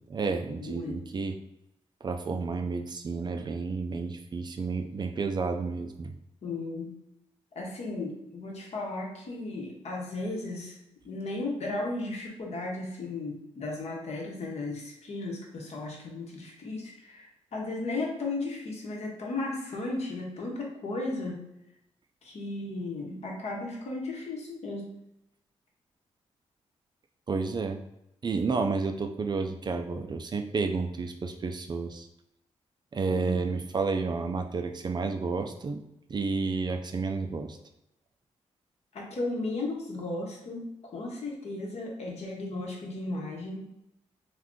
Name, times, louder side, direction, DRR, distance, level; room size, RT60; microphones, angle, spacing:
voice 1, 0.0-1.4 2.0-6.1 27.3-27.8 28.2-32.1 32.9-35.8 36.1-37.6, right 4 dB, 40° right, 5 dB, 0.3 m, -31 dB
voice 2, 0.6-1.0 6.4-6.9 7.5-10.8 11.0-21.4 22.2-24.9 33.1-33.4 38.9-43.7, left 2 dB, 65° left, -1 dB, 0.9 m, -35 dB
2.5 x 2.2 x 3.6 m, 0.85 s
cardioid pair, 65°, 12 cm